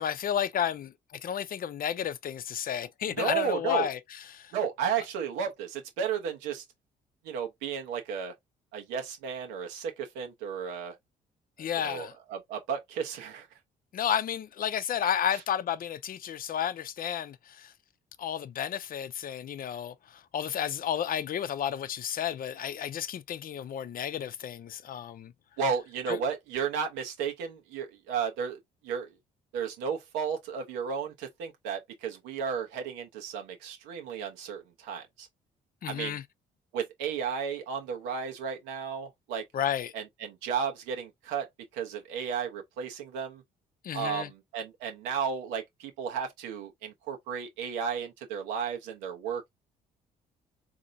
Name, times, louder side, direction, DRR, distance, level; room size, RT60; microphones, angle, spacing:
voice 1, 0.0-4.5 11.6-12.1 13.9-17.7 18.2-25.3 26.1-26.2 35.8-36.2 39.5-39.9 43.8-44.3, left 9 dB, 50° left, 0.6 m, -32 dB
voice 2, 3.2-3.9 4.5-6.6 7.2-8.3 8.7-10.9 11.6-13.5 25.6-29.1 29.5-35.3 35.9-36.2 36.7-39.4 39.9-41.5 41.7-43.4 43.9-49.5, right 7 dB, 90° right, 1.0 m, -33 dB
3.9 x 2.8 x 2.6 m
supercardioid pair, 65°, 18 cm